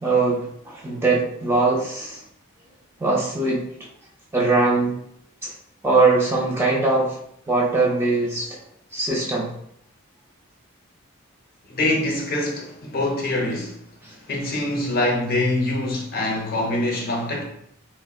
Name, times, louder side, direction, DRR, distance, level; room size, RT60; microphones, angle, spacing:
voice 1, 0.0-2.2 3.0-3.6 4.3-5.0 5.4-5.5 5.8-7.2 7.5-8.6 8.9-9.5 14.0-14.2, right 3 dB, 10° right, 0.4 m, -21 dB
voice 2, 11.7-13.8 14.3-17.4, left 1 dB, 45° left, 0.6 m, -24 dB
3.7 x 2.0 x 2.3 m
head